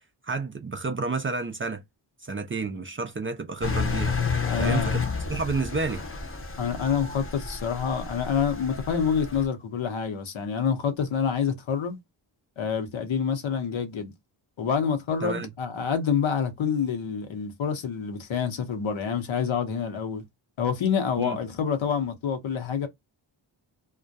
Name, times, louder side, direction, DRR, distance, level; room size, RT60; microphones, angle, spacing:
voice 1, 0.2-1.8 2.2-4.1 4.6-5.0 5.3-6.0 15.2-15.5 21.2-21.4, right 3 dB, 25° right, 0.4 m, -30 dB
Engine, 3.6-9.4, left 5 dB, 25° left, 0.8 m, -30 dB
voice 2, 4.4-4.9 6.6-12.0 12.6-14.1 14.6-20.2 20.6-22.9, left 7 dB, 70° left, 0.9 m, -27 dB
2.3 x 2.1 x 2.6 m
cardioid pair, 55°, 49 cm